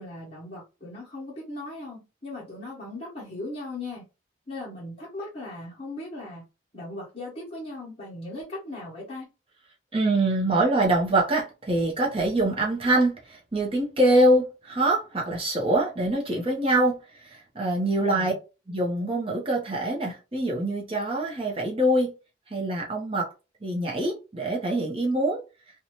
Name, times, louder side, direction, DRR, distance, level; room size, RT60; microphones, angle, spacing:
voice 1, 0.0-4.0 4.5-6.4 6.7-9.3 18.0-18.4, left 2 dB, 30° left, 1.0 m, -38 dB
voice 2, 9.9-18.3 18.7-22.1 22.5-23.3 23.6-25.4, right 1 dB, 30° right, 0.7 m, -24 dB
2.7 x 2.3 x 2.9 m
head